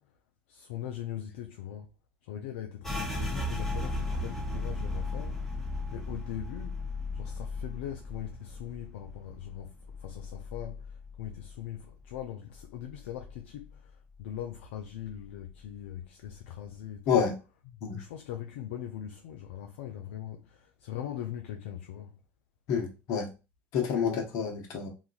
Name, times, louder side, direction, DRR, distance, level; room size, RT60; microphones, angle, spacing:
voice 1, 0.5-1.9 2.3-5.3 5.9-6.8 7.2-9.7 10.0-10.8 11.2-13.7 14.2-17.2 17.9-20.4 20.8-22.1, left 11 dB, 80° left, 0.3 m, -40 dB
sound 1, 2.8-12.2 12.5-13.8 14.1-14.6 15.0-15.6, left 2 dB, 5° left, 0.7 m, -37 dB
voice 2, 22.7-23.3 23.7-24.9, left 7 dB, 60° left, 0.9 m, -28 dB
2.8 x 2.4 x 2.4 m
hypercardioid pair, 75°, 7 cm